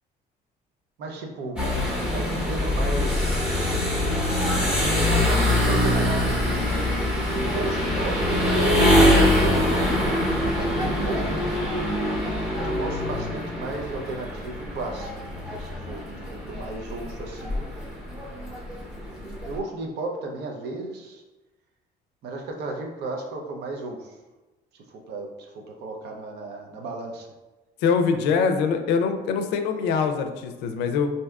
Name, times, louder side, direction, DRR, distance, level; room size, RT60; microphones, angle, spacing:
voice 1, 1.0-4.0 5.0-6.7 7.3-8.4 9.1-10.3 10.6-11.2 12.6-15.1 15.6-16.0 16.3-17.8 19.5-21.2 22.2-24.2 24.7-27.3, right 3 dB, 75° right, 2 dB, 0.6 m, -34 dB
sound 1, 1.6-19.6, left 1 dB, 5° right, 0.8 m, -24 dB
voice 2, 27.8-31.1, left 5 dB, 90° left, 7 dB, 0.4 m, -23 dB
3.4 x 2.7 x 2.3 m, 1.1 s
cardioid pair, 110°, 17 cm